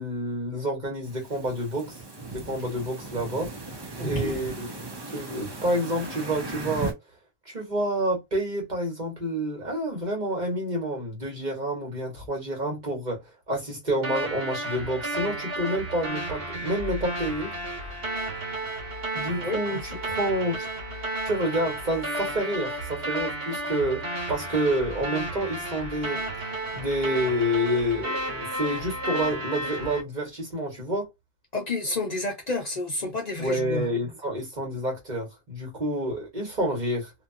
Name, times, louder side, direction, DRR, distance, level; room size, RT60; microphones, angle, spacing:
voice 1, 0.0-2.0 2.3-3.7 4.0-7.0 7.4-13.2 13.5-17.5 19.1-20.7 21.2-24.0 24.3-26.2 26.7-31.1 33.4-37.1, equal, 45° right, 1.3 m, -28 dB
sound 1, 1.0-6.9, right 3 dB, 30° right, 0.6 m, -36 dB
voice 2, 4.0-4.4 19.3-20.0 31.5-33.8, left 2 dB, 40° left, 1.0 m, -30 dB
sound 2, 14.0-30.0, right 1 dB, 65° right, 1.3 m, -32 dB
2.8 x 2.3 x 2.6 m
omnidirectional pair, 1.1 m